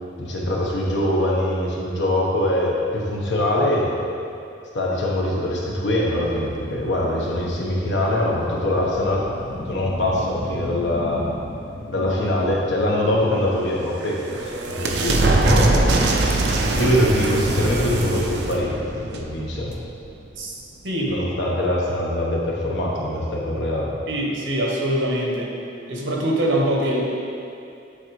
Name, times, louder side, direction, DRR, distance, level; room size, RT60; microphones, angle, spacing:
voice 1, 0.2-4.0 4.7-9.2 9.7-11.3 11.9-15.9 16.8-19.7 21.1-23.9, left 1 dB, 75° left, -3 dB, 1.0 m, -23 dB
sound 1, 6.0-13.8, left 1 dB, 50° left, 0.5 m, -36 dB
sound 2, 13.7-20.1, right 2 dB, 60° right, 0.5 m, -22 dB
voice 2, 20.8-21.2 24.1-25.5 25.9-27.0, right 1 dB, 90° right, -2 dB, 1.1 m, -23 dB
8.4 x 4.0 x 3.1 m, 2.5 s
head